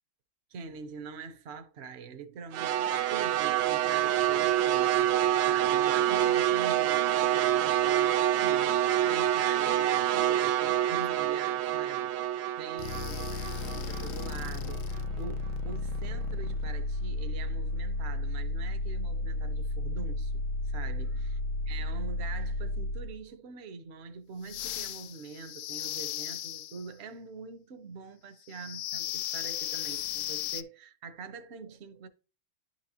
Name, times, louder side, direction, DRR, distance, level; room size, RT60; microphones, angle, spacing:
voice 1, 0.5-8.2 8.4-21.4 21.7-32.1, right 5 dB, 55° right, 0.7 m, -44 dB
sound 1, 2.5-14.8, right 12 dB, 80° right, 1.4 m, -27 dB
sound 2, 12.8-23.2 24.4-26.9 28.5-30.6, left 3 dB, 75° left, 1.0 m, -34 dB
11.0 x 4.6 x 2.8 m
omnidirectional pair, 2.2 m